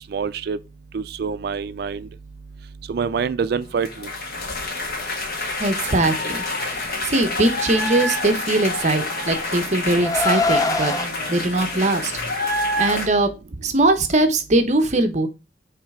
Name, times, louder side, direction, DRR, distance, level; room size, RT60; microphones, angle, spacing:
voice 1, 0.1-0.6 0.9-2.1 2.9-4.1, right 6 dB, 60° right, 0.3 m, -26 dB
sound 1, 3.8-13.1, left 2 dB, 55° left, 1.5 m, -27 dB
voice 2, 5.6-10.9 11.3-12.1 12.4-13.3 13.6-15.3, right 2 dB, 40° right, 0.8 m, -21 dB
Car, 8.6-11.1, left 3 dB, 20° left, 0.6 m, -24 dB
7.4 x 3.2 x 4.8 m
head